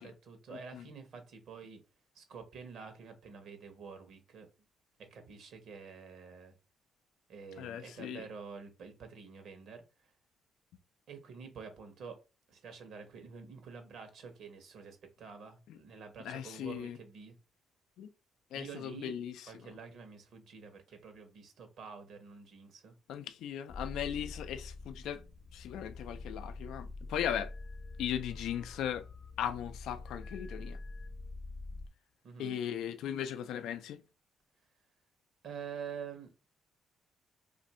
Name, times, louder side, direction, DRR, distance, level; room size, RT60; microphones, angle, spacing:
voice 1, 0.0-1.8 2.1-4.5 5.0-6.5 7.3-10.1 11.1-12.2 12.5-17.4 18.5-19.1 19.5-22.9 32.2-32.6 35.4-36.5, right 6 dB, 70° right, 0.9 m, -48 dB
voice 2, 7.6-8.2 15.7-15.8 16.2-17.0 18.0-18.1 18.5-19.5 23.1-25.2 25.5-27.5 28.0-29.1 29.4-30.8 32.4-34.0, left 9 dB, 85° left, 0.3 m, -38 dB
sound 1, 23.7-31.9, left 3 dB, 35° left, 0.6 m, -45 dB
2.6 x 2.5 x 4.1 m
cardioid pair, 90°, 0 cm